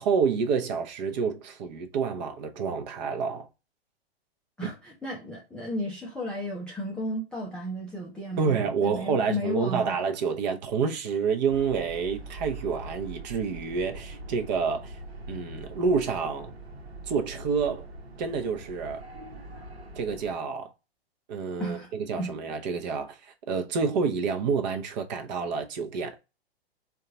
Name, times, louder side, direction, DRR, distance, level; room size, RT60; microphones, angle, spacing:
voice 1, 0.0-3.5 4.6-4.7 8.4-14.9 15.3-16.5 17.1-17.9 18.2-19.0 20.0-20.7 21.3-26.2, right 5 dB, 45° right, 0.7 m, -28 dB
voice 2, 4.6-8.6 8.8-10.0 21.6-21.9 22.2-22.3, equal, 5° left, 0.4 m, -33 dB
sound 1, 11.5-20.4, right 2 dB, 85° right, 0.9 m, -43 dB
3.7 x 2.3 x 3.7 m
figure-of-eight pair, 115°, 31 cm